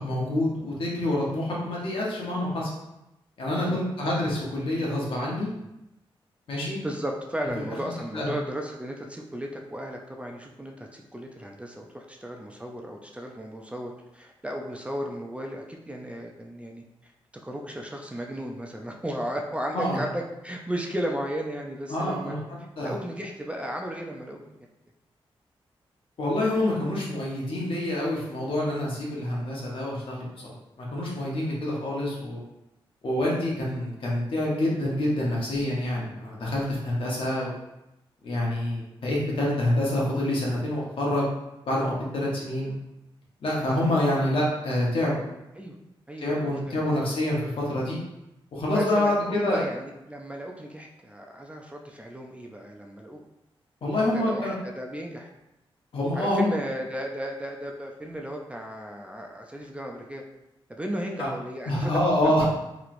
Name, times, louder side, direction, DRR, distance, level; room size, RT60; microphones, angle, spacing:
voice 1, 0.0-2.7 3.4-5.5 6.5-6.8 8.1-8.3 19.7-20.0 21.9-22.9 26.2-32.4 33.0-37.5 38.2-41.3 41.6-42.7 43.4-45.2 46.2-48.0 48.5-49.6 53.8-54.5 55.9-56.5 61.2-61.3 61.7-62.5, left 1 dB, 65° left, -4 dB, 1.0 m, -27 dB
voice 2, 3.5-3.8 6.5-16.8 17.4-22.4 22.8-24.4 45.6-45.7 46.1-47.1 48.7-53.2 53.8-55.3 56.1-60.2 60.7-62.0, equal, 15° right, 1 dB, 0.4 m, -35 dB
3.0 x 2.9 x 2.5 m, 0.91 s
cardioid pair, 80°, 10 cm